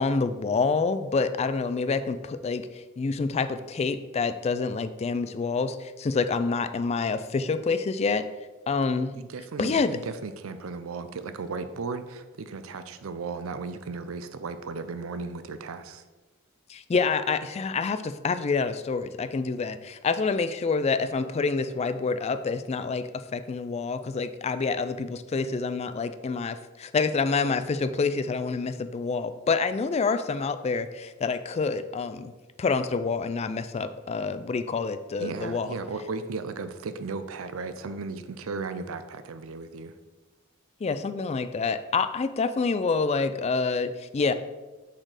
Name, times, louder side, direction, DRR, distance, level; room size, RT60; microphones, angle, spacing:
voice 1, 0.0-8.2 8.7-9.1 9.6-10.0 16.7-32.3 32.6-35.7 40.8-44.3, left 4 dB, 30° left, 11 dB, 0.3 m, -27 dB
voice 2, 9.1-16.0 35.2-40.0, right 4 dB, 85° right, 10 dB, 0.5 m, -35 dB
6.2 x 4.3 x 4.8 m, 1.2 s
head